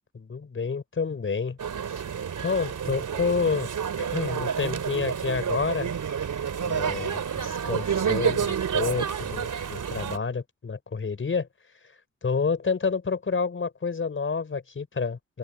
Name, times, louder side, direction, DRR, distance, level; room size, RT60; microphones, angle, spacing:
voice 1, 0.1-1.6 2.4-3.7 4.1-5.9 6.6-11.5 12.2-15.4, left 5 dB, 40° left, 4.9 m, -29 dB
sound 1, 1.6-10.2, right 7 dB, 80° right, 3.7 m, -29 dB
wide cardioid pair, 155°, 30 cm